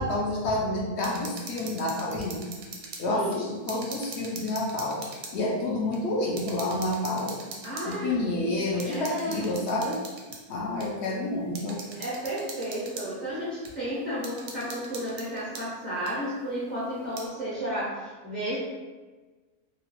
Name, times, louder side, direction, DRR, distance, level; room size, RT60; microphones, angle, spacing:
voice 1, 0.0-2.4 3.0-5.0 5.3-7.3 7.8-10.0 10.5-11.8, left 2 dB, 65° left, -2 dB, 0.7 m, -29 dB
sound 1, 1.0-3.1 3.3-5.4 5.9-6.0 6.4-8.0 8.8-10.4 10.8-10.9 11.5-13.1 13.6-13.7 14.2-15.7 16.1-16.2 16.9-17.3, right 4 dB, 80° right, 1.0 m, -42 dB
voice 2, 3.1-3.5 7.6-8.1 8.8-9.5 12.0-18.6, equal, 45° right, -10 dB, 0.6 m, -32 dB
2.8 x 2.2 x 2.9 m, 1.3 s
omnidirectional pair, 1.6 m